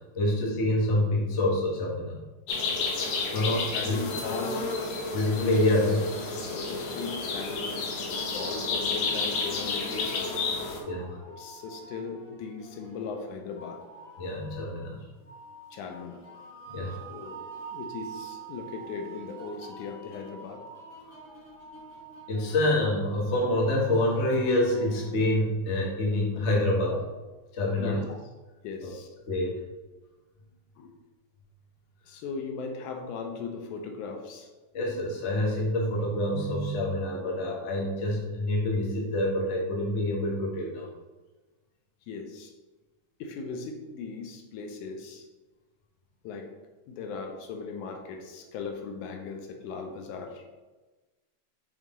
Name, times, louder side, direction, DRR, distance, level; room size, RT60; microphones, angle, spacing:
voice 1, 0.1-2.2 3.3-3.6 3.8-3.9 5.1-6.0 10.8-11.2 14.2-15.0 16.7-17.0 22.3-27.0 27.5-28.0 28.8-28.9 29.3-29.6 34.7-40.9, left 1 dB, 55° left, -3 dB, 0.7 m, -26 dB
sound 1, 2.5-10.8, left 3 dB, 70° left, 2.0 m, -31 dB
voice 2, 3.2-4.7 6.4-7.8 8.3-10.3 11.3-13.8 15.7-16.3 17.1-17.4 17.7-20.6 27.8-28.0 28.6-29.1 30.8-30.9 32.1-34.5 42.1-42.5 43.2-45.3 46.2-46.5 46.9-50.4, left 5 dB, 85° left, 3 dB, 2.2 m, -38 dB
sound 2, 8.1-25.1, right 4 dB, 30° left, 2.0 m, -46 dB
6.3 x 4.0 x 3.7 m, 1.2 s
omnidirectional pair, 3.4 m